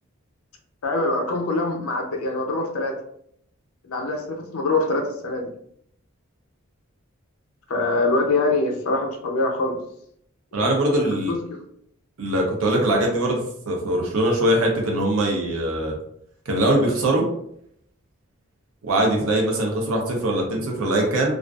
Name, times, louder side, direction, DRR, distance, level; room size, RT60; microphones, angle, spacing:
voice 1, 0.8-2.9 3.8-5.5 7.7-9.8 10.5-11.6, left 2 dB, 85° left, 2 dB, 0.5 m, -24 dB
voice 2, 10.5-11.3 12.2-16.0 16.5-17.3 18.8-21.3, right 1 dB, 80° right, 0 dB, 0.6 m, -22 dB
2.4 x 2.3 x 2.3 m, 0.70 s
head